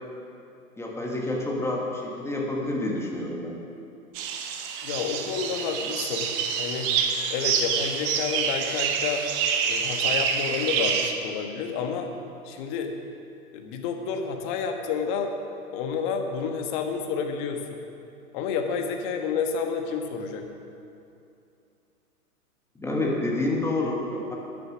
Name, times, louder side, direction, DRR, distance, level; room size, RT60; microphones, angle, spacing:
voice 1, 0.8-3.6 22.7-24.3, left 2 dB, 5° left, -3 dB, 1.3 m, -28 dB
sound 1, 4.2-11.1, right 6 dB, 25° right, 0.8 m, -27 dB
voice 2, 4.8-6.3 6.6-6.9 7.3-9.2 9.7-12.1 12.4-12.9 13.5-15.3 15.7-17.8 18.3-20.4, left 6 dB, 35° left, 4 dB, 1.4 m, -30 dB
13.0 x 9.5 x 6.0 m, 2.6 s
figure-of-eight pair, 120°, 46 cm